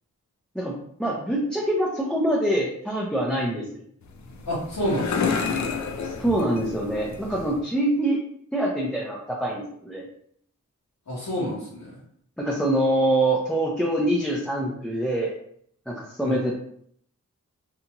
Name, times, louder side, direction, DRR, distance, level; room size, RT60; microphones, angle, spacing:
voice 1, 1.0-3.8 6.0-8.2 8.5-10.1 12.4-15.3 15.9-16.5, right 1 dB, ahead, -4 dB, 0.6 m, -25 dB
sound 1, 4.0-7.6, left 5 dB, 60° left, 0.4 m, -30 dB
voice 2, 4.5-5.4 11.1-12.0 16.2-16.5, equal, 80° left, -10 dB, 1.0 m, -29 dB
2.8 x 2.4 x 2.8 m, 0.66 s
cardioid pair, 55°, 32 cm